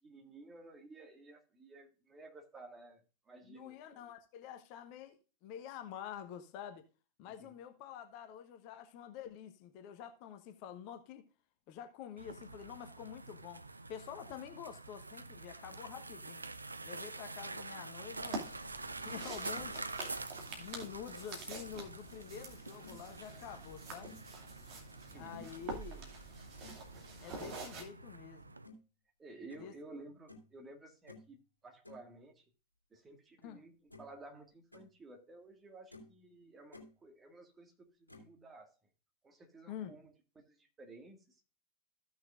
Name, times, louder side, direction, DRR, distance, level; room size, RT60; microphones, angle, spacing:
voice 1, 0.0-4.0 7.4-7.6 25.0-25.8 29.2-31.4 31.6-32.4 32.9-38.8 39.2-40.1 40.5-41.4, right 2 dB, 15° right, 1.9 m, -54 dB
voice 2, 3.4-6.8 7.2-11.2 11.7-13.6 13.9-16.4 16.8-18.5 19.0-19.9 20.6-24.1 25.1-26.1 27.2-28.6 29.6-29.7 33.4-33.6 39.7-40.0, left 9 dB, 45° left, 1.2 m, -48 dB
sound 1, 12.2-28.7, right 3 dB, 80° right, 0.5 m, -47 dB
sound 2, 18.1-27.8, right 3 dB, 40° right, 2.6 m, -47 dB
sound 3, 22.8-23.0 23.5-23.6 24.0-24.3 25.3-25.5 26.6-26.9 28.6-28.8 29.5-29.7 30.3-30.5 31.1-31.3 31.8-32.0 33.4-33.5 33.9-34.2 34.5-34.9 35.4-35.5 35.9-36.2 36.5-36.9 38.1-38.3, left 2 dB, 80° left, 2.5 m, -55 dB
15.0 x 6.3 x 2.5 m
figure-of-eight pair, 90°, 0 cm